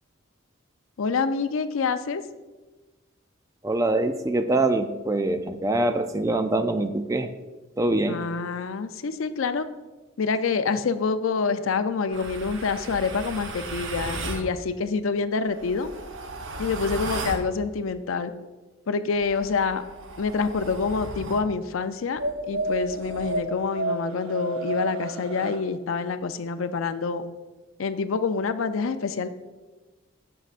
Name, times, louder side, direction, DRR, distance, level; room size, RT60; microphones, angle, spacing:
voice 1, 1.0-2.2 8.1-9.7 10.2-15.9 16.6-18.3 18.9-19.8 20.2-22.2 22.5-27.2 27.8-29.3, left 5 dB, 80° left, 11 dB, 0.5 m, -27 dB
voice 2, 3.6-7.3 7.8-8.2, right 2 dB, 15° right, 8 dB, 0.4 m, -24 dB
sound 1, 12.1-14.5 15.4-17.5 19.1-21.5 22.2-25.6, right 2 dB, 70° right, 0.9 m, -33 dB
14.0 x 6.3 x 2.5 m, 1.2 s
head